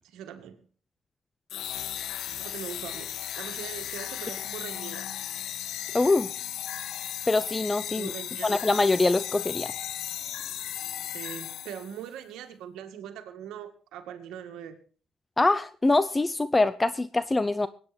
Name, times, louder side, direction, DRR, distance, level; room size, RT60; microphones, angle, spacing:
voice 1, 0.1-0.6 2.4-5.1 7.9-8.5 11.0-14.8, right 9 dB, 85° right, 6 dB, 2.0 m, -41 dB
sound 1, 1.5-12.0, left 11 dB, 75° left, 0.7 m, -36 dB
voice 2, 5.9-6.3 7.3-8.1 8.4-9.7 15.4-17.7, left 2 dB, 20° left, 16 dB, 0.6 m, -24 dB
20.5 x 9.4 x 4.4 m, 0.40 s
cardioid pair, 85°, 0 cm